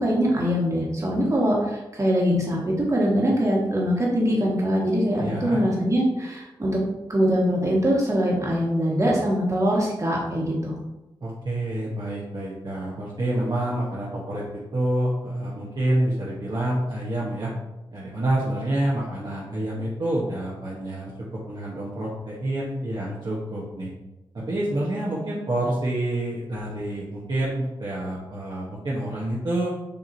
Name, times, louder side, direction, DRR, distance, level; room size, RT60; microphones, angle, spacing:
voice 1, 0.0-6.8 7.1-10.7, equal, 35° right, -3 dB, 1.6 m, -23 dB
voice 2, 5.2-5.6 11.2-17.5 17.9-23.9 24.3-29.7, right 1 dB, 50° right, -6 dB, 1.1 m, -28 dB
6.8 x 2.9 x 2.7 m, 0.99 s
cardioid pair, 60°, 9 cm